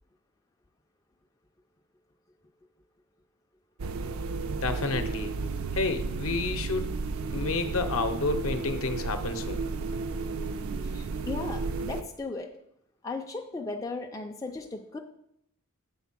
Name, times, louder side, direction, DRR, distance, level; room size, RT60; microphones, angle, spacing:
sound 1, 3.8-12.0, right 3 dB, 65° right, 0.4 m, -33 dB
voice 1, 4.6-5.3 5.7-6.9 7.3-9.6, left 3 dB, 65° left, 8 dB, 0.7 m, -30 dB
voice 2, 10.8-12.5 13.0-15.0, left 3 dB, 15° left, 2 dB, 0.3 m, -36 dB
7.1 x 3.7 x 5.8 m, 0.74 s
head